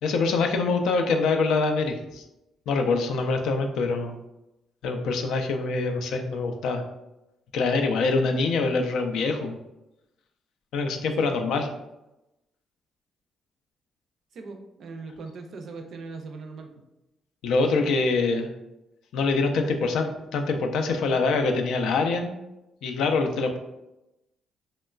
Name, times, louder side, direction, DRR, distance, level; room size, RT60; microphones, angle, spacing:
voice 1, 0.0-2.2 2.7-4.2 4.8-6.8 7.5-9.6 10.7-11.7 17.4-18.5 19.1-22.3 22.8-23.6, left 3 dB, 80° left, 5 dB, 0.3 m, -24 dB
voice 2, 14.3-16.7, right 4 dB, 65° right, 5 dB, 0.4 m, -39 dB
2.9 x 2.1 x 2.3 m, 0.94 s
cardioid pair, 90°, 0 cm